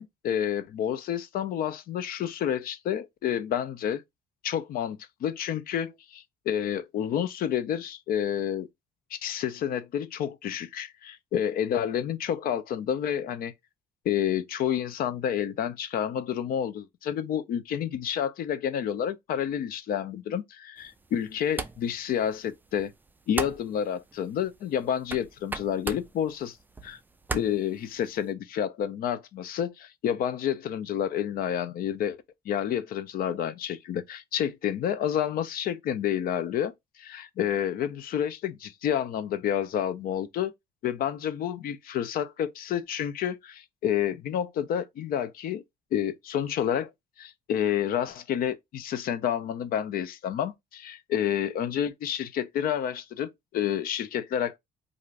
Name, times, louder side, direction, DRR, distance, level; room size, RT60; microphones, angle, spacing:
voice 1, 0.0-4.0 4.4-8.7 9.1-13.5 14.0-22.9 23.3-26.6 26.8-27.0 27.3-32.2 32.5-40.5 40.8-45.6 45.9-46.9 47.2-54.6, left 9 dB, 60° left, 0.5 m, -29 dB
sound 1, 20.8-28.3, right 3 dB, 10° right, 0.3 m, -40 dB
2.5 x 2.5 x 3.1 m
cardioid pair, 110°, 17 cm